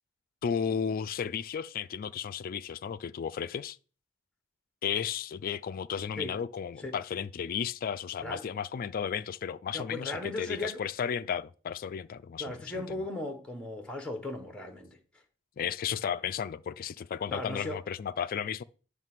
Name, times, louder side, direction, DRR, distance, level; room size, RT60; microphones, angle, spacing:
voice 1, 0.4-3.8 4.8-13.1 15.6-18.6, left 7 dB, 45° left, 0.3 m, -34 dB
voice 2, 9.7-10.8 12.4-15.0 17.3-17.8, left 2 dB, 5° left, 1.1 m, -37 dB
9.2 x 3.3 x 6.0 m
head